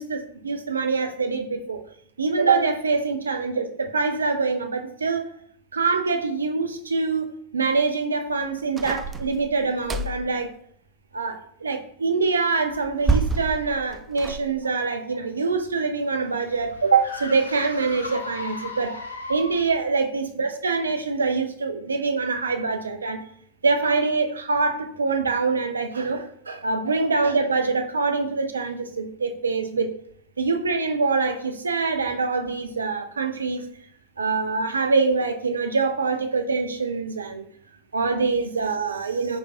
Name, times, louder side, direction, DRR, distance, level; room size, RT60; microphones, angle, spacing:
voice 1, 0.0-1.8 2.2-5.3 5.7-10.5 11.1-18.9 19.3-23.2 23.6-29.9 30.4-33.7 34.2-37.4 37.9-39.4, right 4 dB, 75° right, 7 dB, 0.5 m, -24 dB
sound 1, 8.8-10.3 12.7-14.4, right 4 dB, 20° right, 0.3 m, -27 dB
sound 2, 15.3-19.8, left 2 dB, 80° left, 0.5 m, -37 dB
5.1 x 3.3 x 2.4 m, 0.65 s
figure-of-eight pair, 90°, 0 cm